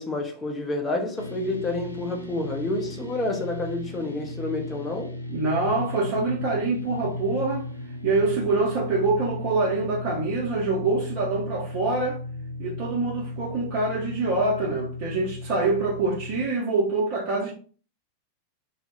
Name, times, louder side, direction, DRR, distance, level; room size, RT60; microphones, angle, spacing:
voice 1, 0.0-5.1, left 2 dB, 15° left, 0.6 m, -29 dB
sound 1, 1.2-16.5, left 2 dB, 90° right, 0.3 m, -36 dB
voice 2, 5.3-7.7 8.0-12.2 12.6-17.5, right 3 dB, 40° right, 0.7 m, -25 dB
sound 2, 5.7-13.4, left 1 dB, 75° left, 0.4 m, -43 dB
2.2 x 2.1 x 3.0 m
figure-of-eight pair, 90°, 0 cm